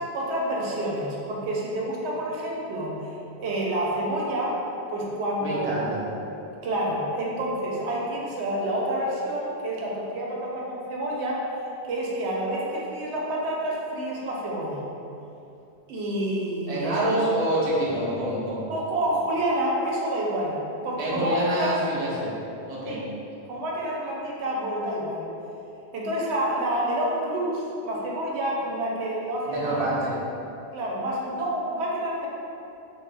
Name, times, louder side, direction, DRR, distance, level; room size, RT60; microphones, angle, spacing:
voice 1, 0.0-3.0 3.4-4.6 4.9-6.3 6.6-11.5 11.8-14.9 15.9-17.0 18.7-20.6 20.8-21.7 22.9-23.0 23.5-25.3 25.9-29.8 30.7-32.3, right 1 dB, 85° right, -3 dB, 0.9 m, -28 dB
voice 2, 5.4-6.0 16.7-18.7 21.0-22.3 22.7-23.0 29.5-30.1, right 1 dB, 40° right, -7 dB, 0.7 m, -26 dB
3.0 x 2.4 x 3.3 m, 2.8 s
omnidirectional pair, 1.1 m